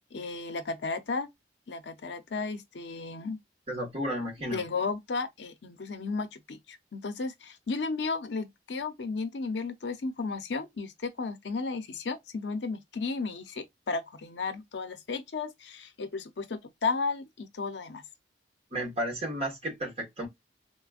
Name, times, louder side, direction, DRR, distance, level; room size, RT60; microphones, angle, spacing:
voice 1, 0.1-1.3 1.7-3.4 4.5-18.0, left 4 dB, 70° left, 0.6 m, -34 dB
voice 2, 3.7-4.6 18.7-20.3, equal, 35° right, 1.3 m, -33 dB
4.1 x 2.1 x 2.3 m
head